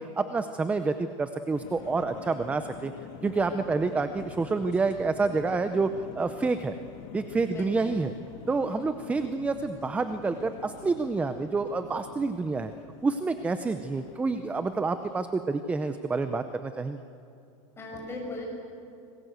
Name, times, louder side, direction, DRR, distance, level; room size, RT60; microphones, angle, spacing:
voice 1, 0.0-2.9 3.2-6.8 7.1-8.1 8.5-12.7 13.0-17.0, right 3 dB, 10° right, 10 dB, 0.6 m, -28 dB
sound 1, 1.5-16.5, left 7 dB, 50° left, 2.0 m, -47 dB
voice 2, 7.5-7.9 17.8-18.5, left 2 dB, 15° left, -1 dB, 6.3 m, -38 dB
26.5 x 21.0 x 8.0 m, 2.6 s
supercardioid pair, 155°, 17 cm